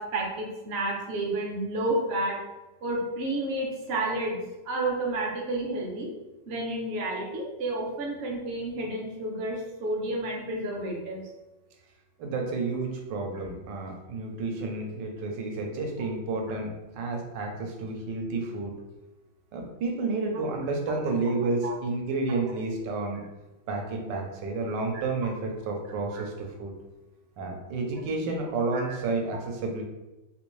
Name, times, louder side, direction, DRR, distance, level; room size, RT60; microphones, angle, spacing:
voice 1, 0.0-2.4 2.8-4.4 4.6-6.1 6.5-11.2 21.6-21.7 22.3-22.4 24.9-25.0 26.1-26.2 28.7-28.8, right 2 dB, 55° right, -1 dB, 0.7 m, -30 dB
voice 2, 12.2-18.8 19.5-23.2 23.7-26.7 27.4-29.8, right 3 dB, 80° right, 2 dB, 1.3 m, -30 dB
3.3 x 2.5 x 3.1 m, 1.0 s
omnidirectional pair, 1.9 m